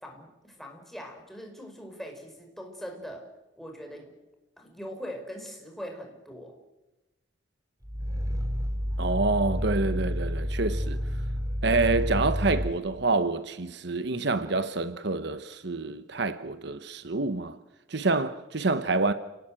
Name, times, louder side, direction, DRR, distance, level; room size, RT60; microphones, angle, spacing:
voice 1, 0.0-3.3 3.6-4.1 4.6-6.5, equal, ahead, 5.2 m, -41 dB
Growling, 7.8-12.8, equal, 20° right, 3.1 m, -29 dB
voice 2, 9.0-11.0 11.6-17.6 17.9-19.1, right 3 dB, 60° right, 1.0 m, -27 dB
30.0 x 18.5 x 9.0 m
head